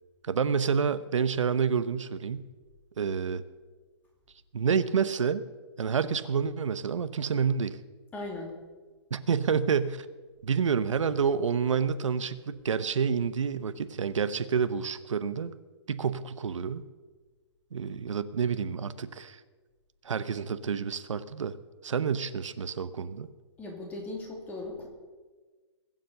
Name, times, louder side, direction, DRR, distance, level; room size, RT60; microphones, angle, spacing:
voice 1, 0.3-2.4 3.0-3.4 4.5-5.4 5.8-7.8 9.1-10.1 10.4-15.5 15.9-16.8 17.7-19.4 20.0-21.6 21.8-23.3, right 6 dB, 90° right, 13 dB, 0.9 m, -28 dB
voice 2, 8.1-8.6 23.6-24.9, left 2 dB, 10° left, 1 dB, 2.5 m, -38 dB
21.5 x 7.6 x 6.6 m, 1.4 s
hypercardioid pair, 165°, 15 cm